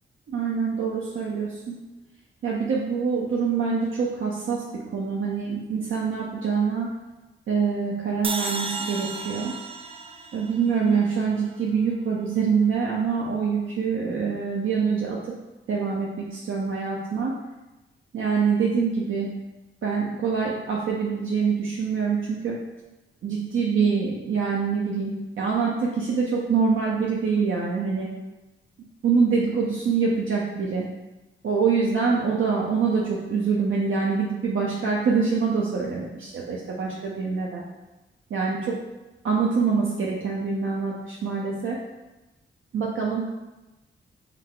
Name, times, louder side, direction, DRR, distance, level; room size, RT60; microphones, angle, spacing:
voice 1, 0.3-1.8 2.4-6.9 7.5-9.5 10.3-15.2 15.7-17.3 18.1-19.3 19.8-22.6 23.2-28.1 29.0-30.8 31.4-37.6 38.3-38.8 39.2-41.8 42.7-43.2, right 5 dB, 75° right, -3 dB, 0.6 m, -25 dB
sound 1, 8.2-11.5, right 3 dB, 25° right, 0.4 m, -34 dB
4.8 x 2.3 x 3.8 m, 1.1 s
cardioid pair, 90°, 21 cm